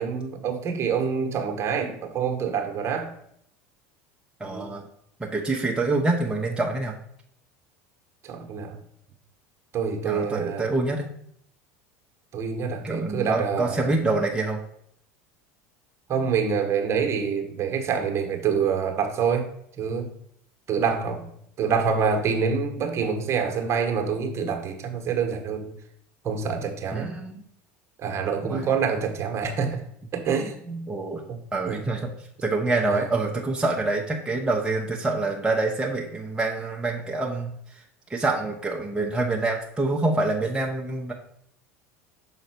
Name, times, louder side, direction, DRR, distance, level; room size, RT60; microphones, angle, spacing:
voice 1, 0.0-3.1 4.5-4.7 8.2-8.8 9.7-10.7 12.3-13.9 16.1-19.5 19.8-20.1 20.7-21.3 21.6-25.7 26.2-27.2 28.0-29.8 30.1-30.8 31.3-31.4 31.7-31.8 32.8-33.1, right 6 dB, 40° right, 4 dB, 1.3 m, -26 dB
voice 2, 4.4-4.8 5.2-7.0 10.0-11.1 12.8-14.6 26.9-27.4 28.4-28.7 30.9-31.2 31.5-32.1 32.4-37.8 38.1-41.1, right 2 dB, 10° right, -1 dB, 0.9 m, -26 dB
6.5 x 3.9 x 4.5 m, 0.70 s
hypercardioid pair, 90°, 7 cm